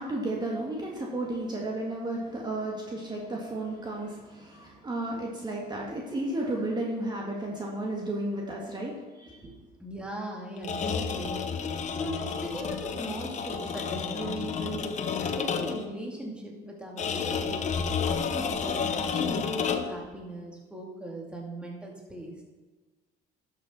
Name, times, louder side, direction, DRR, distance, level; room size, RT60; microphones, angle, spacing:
voice 1, 0.0-9.5, right 1 dB, 25° right, -2 dB, 1.9 m, -33 dB
voice 2, 9.8-11.6 11.9-17.7 18.2-22.4, right 1 dB, 5° right, -1 dB, 2.2 m, -38 dB
sound 1, 10.6-15.9 17.0-20.1, left 6 dB, 45° left, 0.9 m, -31 dB
12.0 x 6.6 x 4.3 m, 1.3 s
cardioid pair, 110°, 17 cm